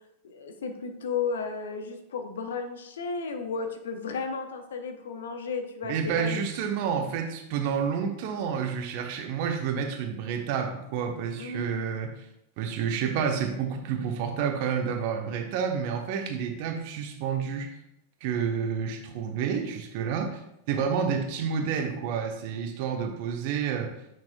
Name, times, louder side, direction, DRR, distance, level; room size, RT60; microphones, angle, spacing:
voice 1, 0.2-6.4 11.4-11.9, left 5 dB, 65° left, 7 dB, 0.8 m, -34 dB
voice 2, 5.8-12.1 12.6-17.7 18.2-20.4 20.7-23.9, right 7 dB, 45° right, 4 dB, 1.0 m, -29 dB
8.8 x 6.0 x 2.3 m, 0.82 s
figure-of-eight pair, 90°, 0 cm